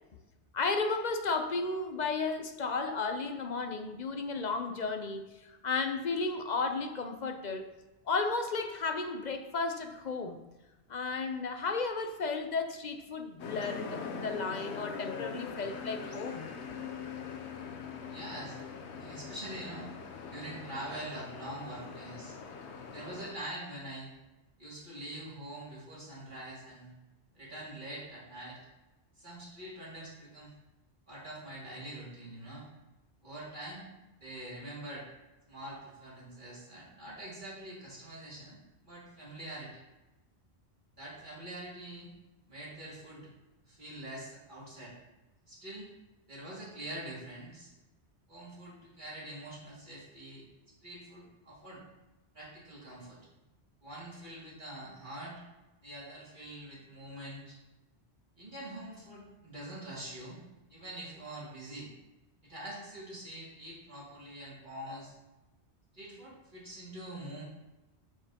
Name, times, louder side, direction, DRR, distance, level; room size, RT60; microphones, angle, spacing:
voice 1, 0.5-7.6 8.1-10.4 10.9-16.5, left 4 dB, 50° left, 6 dB, 0.6 m, -33 dB
sound 1, 13.4-23.3, left 5 dB, 90° left, 1.0 m, -42 dB
voice 2, 18.1-18.6 19.0-19.9 20.3-22.3 22.9-24.1 24.6-26.9 27.3-28.6 29.2-30.5 31.1-32.7 33.2-33.9 34.2-35.1 35.5-39.7 41.0-42.1 42.5-43.3 43.6-44.9 45.4-45.9 46.3-47.7 48.3-50.4 50.8-51.8 52.3-53.2 53.8-55.4 55.8-57.6 58.4-60.4 60.7-61.9 62.4-65.1 65.9-67.4, right 1 dB, 45° right, -7 dB, 2.7 m, -44 dB
7.4 x 6.6 x 2.9 m, 1.1 s
omnidirectional pair, 1.1 m